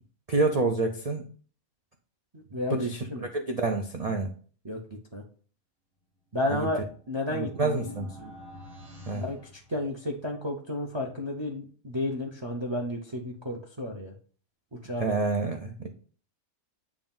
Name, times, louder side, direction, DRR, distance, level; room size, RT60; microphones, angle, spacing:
voice 1, 0.3-1.3 2.7-4.3 6.5-6.7 7.3-8.1 9.1-9.2 15.0-15.9, right 3 dB, 80° right, 4 dB, 0.3 m, -28 dB
voice 2, 2.3-2.7 3.1-3.3 4.6-4.8 5.1-5.2 6.3-8.3 9.1-9.4 9.7-14.1 14.7-15.2, left 1 dB, 30° right, 2 dB, 0.5 m, -32 dB
sound 1, 6.9-10.3, left 1 dB, 55° right, 1.9 m, -49 dB
7.2 x 2.5 x 5.3 m, 0.42 s
omnidirectional pair, 1.5 m